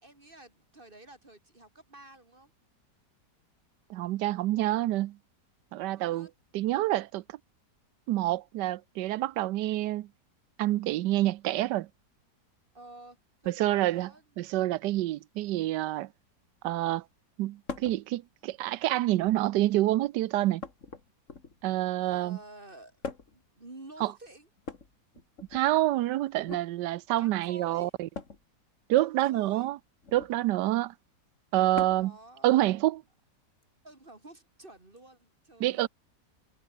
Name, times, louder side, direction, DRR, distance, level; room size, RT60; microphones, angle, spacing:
voice 1, 0.0-2.5 5.9-6.3 12.7-13.2 13.4-14.2 22.0-23.0 23.3-24.5 27.1-27.9 28.9-29.7 31.7-32.6 33.8-35.9, right 2 dB, 30° right, 2.9 m, -51 dB
voice 2, 3.9-5.2 5.7-6.3 6.5-7.2 8.1-10.1 10.6-11.9 13.5-14.1 14.4-16.1 16.6-17.0 17.4-20.6 21.6-22.4 24.0-24.1 25.5-28.1 28.9-29.8 30.1-30.9 31.5-32.1 32.4-33.0 35.6-35.9, right 15 dB, 85° right, 1.3 m, -27 dB
sound 1, 17.7-18.0 19.1-19.6 20.6-21.7 23.0-23.5 24.6-25.7 26.4-26.7 28.1-28.4 30.0-30.4 31.7-32.2 33.6-33.7 35.0-35.1, left 4 dB, 45° left, 2.8 m, -42 dB
omnidirectional pair, 1.8 m